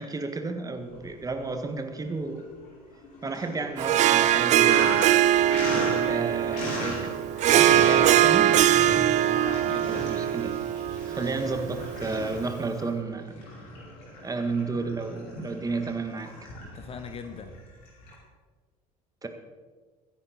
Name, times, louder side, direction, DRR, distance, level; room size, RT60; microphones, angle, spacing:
voice 1, 0.0-2.5 3.2-5.2 6.1-7.1 7.8-8.6 9.9-10.5 11.0-13.4 14.2-16.4 19.2-19.3, right 3 dB, 20° right, 6 dB, 1.7 m, -32 dB
Sink (filling or washing), 0.8-1.7 2.0-18.1, left 1 dB, 55° left, 4.7 m, -37 dB
Harp, 3.8-12.4, right 12 dB, 40° right, 0.5 m, -22 dB
voice 2, 5.7-6.2 7.6-8.1 9.2-10.1 16.6-17.6, left 5 dB, 30° left, 8 dB, 1.1 m, -39 dB
22.5 x 10.0 x 4.2 m, 1.4 s
figure-of-eight pair, 60°, 19 cm